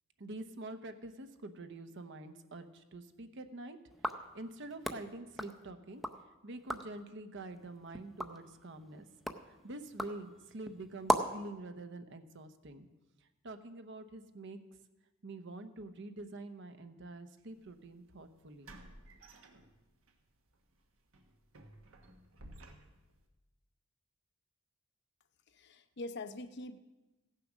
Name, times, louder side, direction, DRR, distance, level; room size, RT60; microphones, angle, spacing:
voice 1, 0.2-3.8 4.3-6.0 6.4-9.1 9.5-12.9 13.4-14.6 15.2-18.8, right 2 dB, 60° right, 8 dB, 0.9 m, -46 dB
sound 1, 3.9-6.2 6.5-7.0 7.5-11.5, equal, ahead, 0.5 m, -38 dB
sound 2, 17.5-17.7 18.6-20.1 20.5-20.7 21.1-23.2, right 1 dB, 80° right, 1.4 m, -55 dB
voice 2, 25.5-26.8, left 2 dB, 55° left, 10 dB, 0.7 m, -44 dB
15.5 x 6.8 x 6.2 m, 1.1 s
head